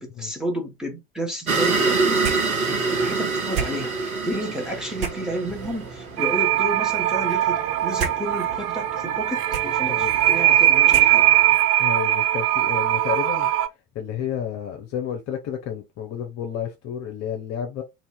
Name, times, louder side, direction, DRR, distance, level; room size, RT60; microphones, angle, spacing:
voice 1, 0.0-2.2 2.7-11.3, right 1 dB, ahead, 1.2 m, -31 dB
sound 1, 1.5-6.1, right 4 dB, 85° right, 0.7 m, -24 dB
sound 2, 2.2-11.6, right 6 dB, 55° right, 1.1 m, -35 dB
sound 3, 6.2-13.7, right 13 dB, 35° right, 0.4 m, -20 dB
voice 2, 11.8-13.5 13.9-17.8, left 9 dB, 40° left, 0.7 m, -31 dB
2.8 x 2.6 x 3.4 m
figure-of-eight pair, 60°, 41 cm